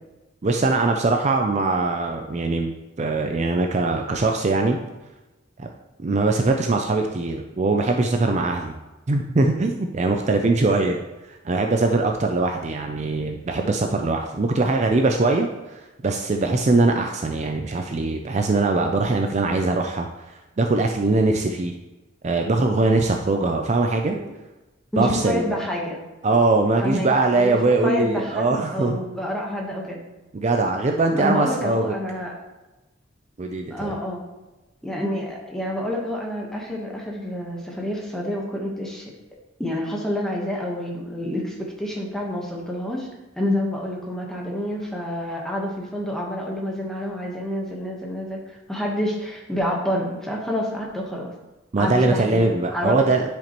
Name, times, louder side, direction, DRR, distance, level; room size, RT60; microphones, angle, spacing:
voice 1, 0.4-4.8 5.6-5.7 6.0-8.7 9.1-11.0 11.3-21.7 22.2-24.1 25.0-25.6 26.2-29.0 30.3-31.9 33.4-33.9 51.7-53.2, right 3 dB, 35° right, 3 dB, 0.4 m, -22 dB
voice 2, 24.9-26.0 26.8-30.0 31.1-32.3 33.7-34.2 34.8-39.1 39.6-43.1 43.4-51.3 51.8-53.1, left 1 dB, 5° left, -2 dB, 1.2 m, -28 dB
10.5 x 5.0 x 3.1 m, 1.1 s
head